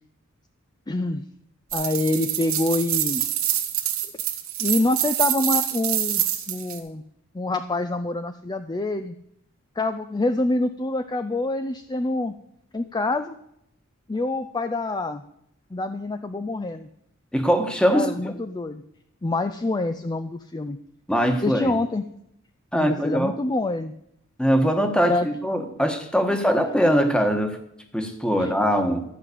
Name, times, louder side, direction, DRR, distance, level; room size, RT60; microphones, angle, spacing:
voice 1, 0.9-1.2 1.7-3.2 4.6-7.0 7.3-9.2 9.8-12.4 12.7-13.4 14.1-15.2 15.7-16.9 17.9-18.8 19.2-20.8 21.4-22.1 22.7-23.9 25.1-25.3 28.4-28.5, left 2 dB, 20° left, 9 dB, 0.5 m, -26 dB
sound 1, 1.7-6.8, right 11 dB, 85° right, 1.5 m, -26 dB
voice 2, 17.3-18.1 21.1-21.8 22.7-23.4 24.4-27.6 27.9-29.0, equal, 5° left, 5 dB, 1.3 m, -22 dB
13.5 x 5.7 x 8.3 m, 0.76 s
head